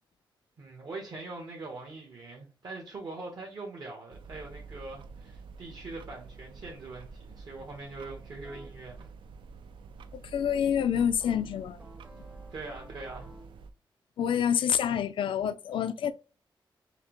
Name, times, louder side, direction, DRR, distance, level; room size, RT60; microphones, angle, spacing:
voice 1, 0.6-9.1 12.5-13.3, right 3 dB, 50° right, 1.0 m, -42 dB
sound 1, 4.1-13.7, right 4 dB, 70° right, 0.4 m, -48 dB
sound 2, 8.4-8.7 11.2-13.6, right 1 dB, 20° right, 0.7 m, -53 dB
voice 2, 10.1-11.8 14.2-16.1, left 8 dB, 80° left, 0.4 m, -27 dB
5.7 x 2.0 x 2.9 m
wide cardioid pair, 175°, 9 cm